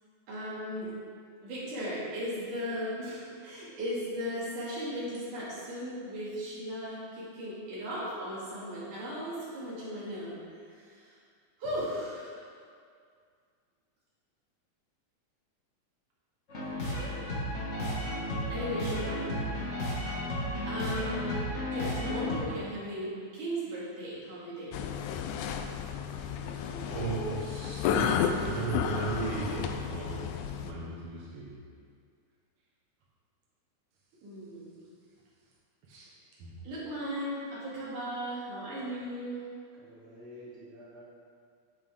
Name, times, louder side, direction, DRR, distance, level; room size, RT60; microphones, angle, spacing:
voice 1, 0.3-0.9 1.4-11.2 11.6-12.4 16.8-17.4 18.2-19.4 20.7-21.4 21.7-24.9 26.2-26.9 28.2-29.2 34.2-34.7 36.0-36.1 36.6-39.5, equal, 90° right, -9 dB, 4.0 m, -37 dB
sound 1, 16.5-22.4, left 1 dB, 35° left, 1.3 m, -33 dB
sound 2, 24.7-30.7, left 7 dB, 85° left, 2.0 m, -32 dB
voice 2, 26.9-28.0 28.5-30.3 30.6-31.6 35.9-36.0 36.4-36.5, right 4 dB, 55° right, -6 dB, 2.1 m, -36 dB
voice 3, 39.8-41.0, equal, 25° right, -9 dB, 2.6 m, -49 dB
9.1 x 8.6 x 3.7 m, 2.2 s
omnidirectional pair, 3.5 m